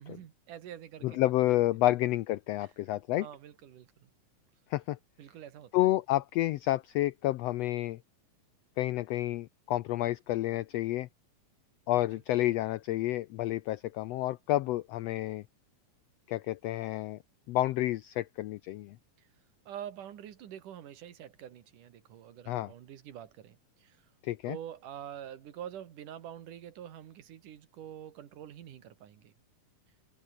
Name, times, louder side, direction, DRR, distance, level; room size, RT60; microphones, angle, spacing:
voice 1, 0.0-1.3 2.6-2.7 3.2-4.1 5.2-5.7 19.2-19.3 19.7-24.1 24.4-29.3, right 10 dB, 80° right, 3.4 m, -46 dB
voice 2, 1.0-3.3 4.7-5.0 5.7-8.0 8.8-11.1 11.9-15.4 16.3-17.2 17.5-19.0 22.5-22.7 24.2-24.6, left 15 dB, 85° left, 1.4 m, -30 dB
omnidirectional pair, 3.6 m